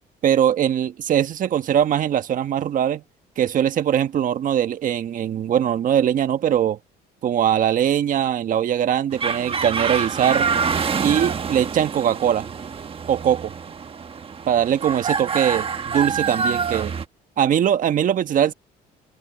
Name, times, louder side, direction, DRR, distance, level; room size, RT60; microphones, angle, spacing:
voice 1, 0.2-3.0 3.4-6.8 7.2-10.5 11.0-12.5 13.1-13.5 14.5-16.9 17.4-18.5, right 9 dB, 50° right, 1.4 m, -21 dB
sound 1, 9.1-17.0, right 5 dB, 35° right, 1.4 m, -26 dB
cardioid pair, 110°, 17 cm